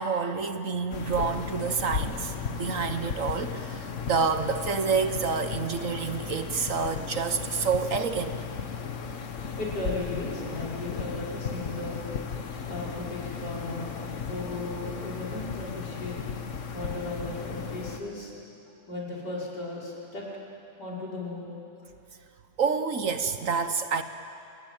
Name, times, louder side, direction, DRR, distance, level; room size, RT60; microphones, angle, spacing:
voice 1, 0.0-8.3 22.6-24.0, right 5 dB, 55° right, 9 dB, 1.3 m, -28 dB
sound 1, 0.9-18.0, left 6 dB, 50° left, 1.4 m, -35 dB
voice 2, 9.6-12.0 12.7-16.2 16.7-18.3 18.9-20.3 20.8-21.5, left 2 dB, 80° left, -5 dB, 6.0 m, -36 dB
27.0 x 21.0 x 9.0 m, 2.7 s
omnidirectional pair, 1.8 m